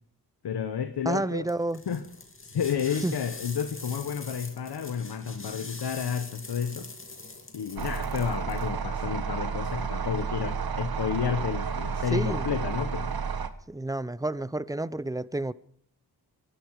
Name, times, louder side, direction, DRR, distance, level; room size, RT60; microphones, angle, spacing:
voice 1, 0.4-1.5 1.9-2.0 2.4-6.9 7.5-13.1, left 7 dB, 75° left, 1.2 m, -31 dB
voice 2, 1.0-1.8 3.0-3.1 12.1-12.5 13.7-15.5, right 2 dB, 10° right, 0.6 m, -30 dB
sound 1, 1.5-8.7, left 3 dB, 30° left, 2.4 m, -43 dB
sound 2, 7.8-13.5, right 6 dB, 65° right, 1.4 m, -31 dB
23.0 x 11.5 x 4.8 m
cardioid pair, 65°, 40 cm